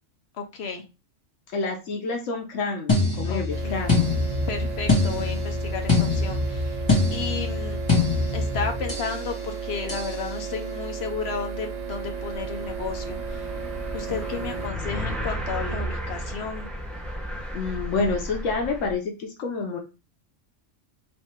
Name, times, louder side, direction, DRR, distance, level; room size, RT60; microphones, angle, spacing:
voice 1, 0.4-0.8 3.3-3.8 4.5-6.8 7.1-7.8 8.3-13.5 13.9-16.7, left 5 dB, 60° left, 4 dB, 1.0 m, -33 dB
voice 2, 1.5-4.1 17.5-19.8, left 4 dB, 85° left, 2 dB, 1.1 m, -28 dB
sound 1, 2.9-9.2 9.9-10.2, left 3 dB, 20° left, 1.3 m, -24 dB
sound 2, 3.5-14.7, right 6 dB, 45° right, 0.6 m, -34 dB
sound 3, 11.1-11.2 11.4-18.9, equal, ahead, 0.9 m, -34 dB
3.3 x 2.8 x 4.4 m, 0.28 s
omnidirectional pair, 1.3 m